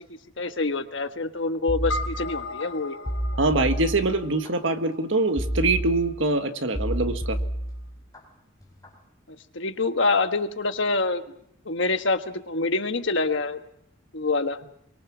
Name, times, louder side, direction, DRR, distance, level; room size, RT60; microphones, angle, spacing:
voice 1, 0.4-3.0 9.3-11.2 11.6-13.6 14.1-14.6, left 3 dB, 60° left, 8 dB, 1.4 m, -26 dB
sound 1, 1.7-2.6 3.0-4.5 5.4-6.3 6.7-8.2 8.6-9.0, equal, 15° left, 4.4 m, -30 dB
sound 2, 1.9-6.5, left 2 dB, 85° left, 4.4 m, -38 dB
voice 2, 3.4-7.4, right 2 dB, 65° right, 7 dB, 1.6 m, -24 dB
23.5 x 23.0 x 6.2 m, 0.73 s
head